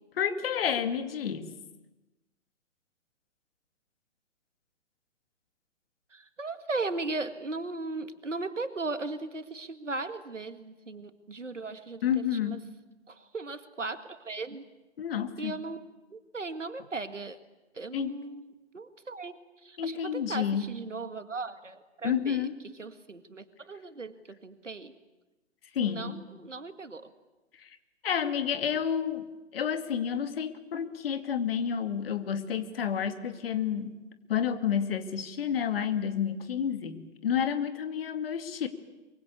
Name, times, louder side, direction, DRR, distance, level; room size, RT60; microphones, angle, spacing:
voice 1, 0.2-1.5 12.0-12.6 15.0-15.6 17.9-18.1 19.8-20.7 22.0-22.5 25.7-26.2 27.6-27.7 28.0-29.3 29.5-34.0 34.3-38.7, left 8 dB, 50° left, 9 dB, 2.4 m, -30 dB
voice 2, 6.1-12.6 13.1-14.6 15.4-15.8 16.1-17.4 17.7-18.5 18.7-22.5 22.8-25.0 25.8-27.1, right 3 dB, 85° right, 10 dB, 2.0 m, -37 dB
23.5 x 23.5 x 8.5 m, 1.1 s
figure-of-eight pair, 125°, 36 cm